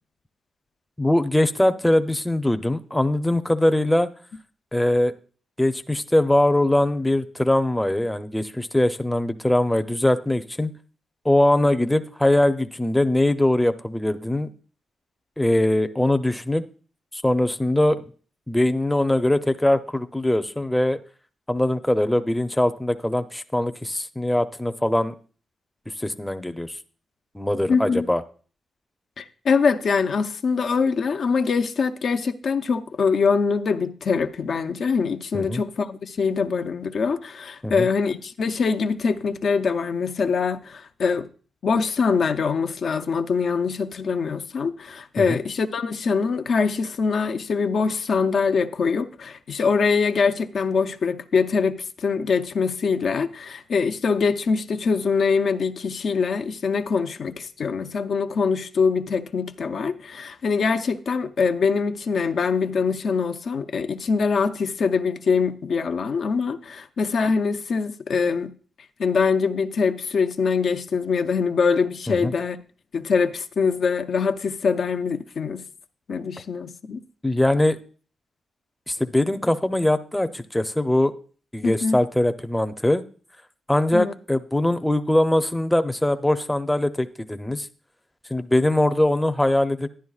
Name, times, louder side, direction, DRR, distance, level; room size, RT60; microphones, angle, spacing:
voice 1, 1.0-4.1 4.7-5.1 5.6-10.7 11.2-14.5 15.4-16.7 17.1-18.1 18.5-21.0 21.5-25.1 26.0-26.8 27.3-28.2 35.3-35.6 37.6-37.9 45.2-45.4 72.1-72.3 77.2-77.8 78.9-81.1 81.5-83.0 83.7-87.7 88.3-89.9, left 1 dB, 10° left, 0.6 m, -22 dB
voice 2, 27.7-28.1 29.2-41.3 41.6-68.5 69.0-72.6 72.9-75.6 76.1-77.0 81.6-82.0 83.9-84.1, left 5 dB, 65° left, 0.5 m, -23 dB
11.0 x 10.0 x 2.4 m
cardioid pair, 60°, 0 cm